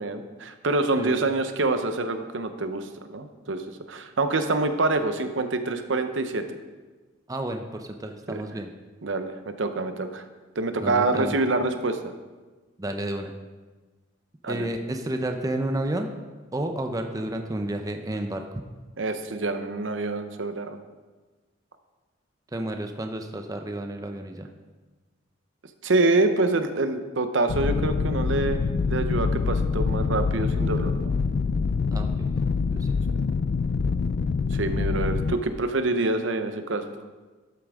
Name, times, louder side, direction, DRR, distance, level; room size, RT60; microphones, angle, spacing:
voice 1, 0.0-3.6 3.9-6.6 8.3-8.4 9.0-10.2 10.6-12.0 14.4-14.7 19.0-20.8 25.8-28.6 28.9-31.1 34.5-36.9, right 2 dB, 65° right, 8 dB, 0.8 m, -26 dB
voice 2, 7.3-8.7 10.8-11.4 12.8-13.3 14.5-16.1 16.5-18.6 22.5-24.5 31.9-32.3 32.7-32.9, right 1 dB, 20° right, 5 dB, 0.6 m, -31 dB
sound 1, 27.5-35.3, left 4 dB, 55° left, 0.4 m, -25 dB
12.5 x 8.5 x 3.6 m, 1.3 s
head